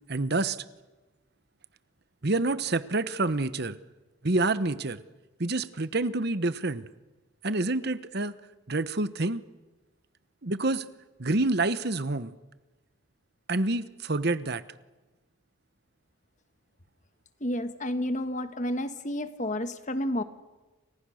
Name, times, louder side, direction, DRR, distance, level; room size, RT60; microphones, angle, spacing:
voice 1, 0.1-0.6 2.2-3.8 4.2-5.0 5.4-6.9 7.4-8.4 8.7-9.4 10.4-10.8 11.2-12.3 13.5-14.6, right 2 dB, 50° right, 14 dB, 1.0 m, -27 dB
voice 2, 17.4-20.2, left 1 dB, 35° left, 10 dB, 1.4 m, -30 dB
29.5 x 26.0 x 6.5 m, 1.2 s
head